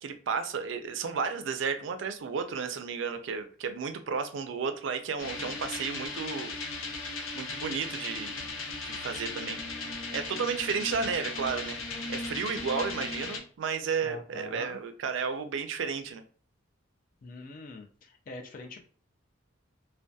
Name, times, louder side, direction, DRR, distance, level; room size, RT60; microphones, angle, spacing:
voice 1, 0.0-6.5 7.3-9.6 10.1-11.8 12.1-16.2, right 5 dB, 65° right, 8 dB, 0.4 m, -33 dB
sound 1, 5.2-13.4, left 3 dB, 90° left, 0.6 m, -37 dB
voice 2, 14.0-14.8 17.2-18.8, left 3 dB, 45° left, 4 dB, 0.3 m, -44 dB
2.6 x 2.1 x 2.2 m, 0.43 s
head